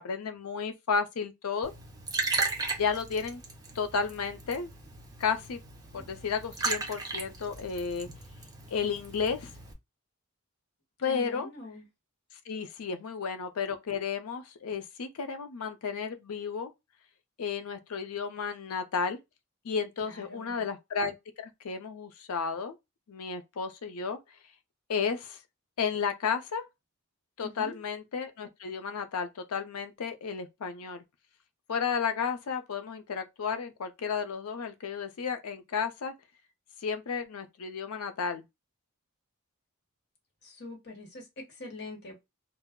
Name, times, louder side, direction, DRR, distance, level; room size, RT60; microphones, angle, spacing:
voice 1, 0.0-1.7 2.8-3.4 3.7-4.7 5.2-5.6 5.9-8.1 8.7-9.5 11.0-11.5 12.5-16.7 17.4-19.2 19.6-22.7 23.1-24.2 24.9-25.4 25.8-26.7 27.4-31.0 31.7-36.1 36.8-38.4, left 6 dB, 85° left, 0.5 m, -33 dB
Liquid, 1.6-9.7, right 3 dB, 15° right, 0.6 m, -36 dB
voice 2, 11.0-11.8 20.0-20.6 27.4-27.8 40.4-42.2, left 2 dB, 50° left, 1.1 m, -44 dB
2.2 x 2.0 x 3.4 m
head